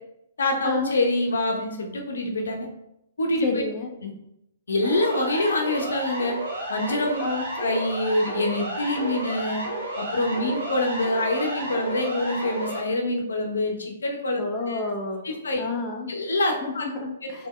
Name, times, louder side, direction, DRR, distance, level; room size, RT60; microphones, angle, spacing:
voice 1, 0.4-2.7 3.2-3.6 4.0-4.1 4.7-6.4 6.7-7.2 7.6-9.6 10.0-14.8 15.2-15.6 16.1-16.9, left 1 dB, 65° left, 3 dB, 0.7 m, -25 dB
voice 2, 3.4-3.9 7.2-7.5 14.4-15.2 15.6-16.1 16.6-17.5, left 3 dB, 20° left, 0 dB, 0.5 m, -29 dB
Siren, 4.8-12.8, right 1 dB, 60° right, 1.2 m, -32 dB
3.4 x 2.8 x 3.1 m, 0.82 s
figure-of-eight pair, 120°, 0 cm